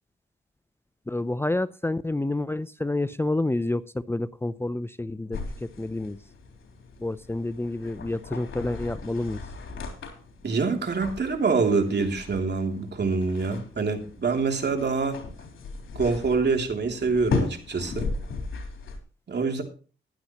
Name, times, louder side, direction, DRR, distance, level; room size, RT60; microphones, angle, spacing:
voice 1, 1.1-5.4 5.8-6.2 7.0-9.4, left 2 dB, 10° left, 15 dB, 0.6 m, -28 dB
sound 1, 5.3-19.0, left 4 dB, 75° left, 3.8 m, -36 dB
voice 2, 10.4-15.2 15.9-18.1 19.3-19.6, right 4 dB, 55° right, 4 dB, 2.9 m, -25 dB
15.5 x 11.5 x 3.0 m, 0.37 s
cardioid pair, 55°, 20 cm